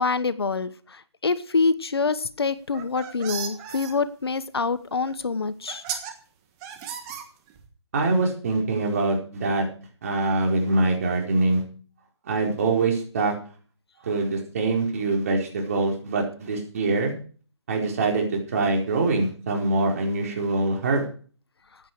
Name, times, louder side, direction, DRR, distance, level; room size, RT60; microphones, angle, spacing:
voice 1, 0.0-5.8, left 4 dB, 60° left, 14 dB, 1.2 m, -26 dB
sound 1, 2.6-3.9 5.1-5.2 5.7-6.1 6.6-7.7, right 8 dB, 15° right, 1.4 m, -35 dB
voice 2, 7.9-9.7 10.0-11.6 12.2-13.3 14.0-17.1 17.7-21.1, right 3 dB, 30° right, 0 dB, 4.8 m, -24 dB
15.5 x 11.0 x 4.8 m, 0.42 s
figure-of-eight pair, 160°, 15 cm